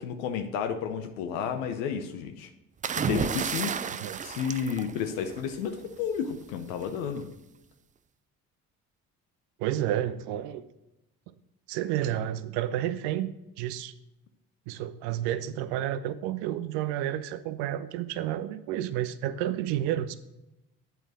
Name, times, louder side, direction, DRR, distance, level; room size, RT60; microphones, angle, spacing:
voice 1, 0.0-2.5 3.0-3.7 4.2-7.3, left 7 dB, 85° left, 7 dB, 0.8 m, -31 dB
sound 1, 2.8-5.6 6.8-7.1, right 7 dB, 20° right, 0.3 m, -32 dB
voice 2, 3.9-4.2 9.6-10.6 11.7-13.9 14.7-20.1, right 12 dB, 75° right, 13 dB, 0.7 m, -31 dB
8.2 x 4.6 x 6.1 m, 0.90 s
hypercardioid pair, 55°, 41 cm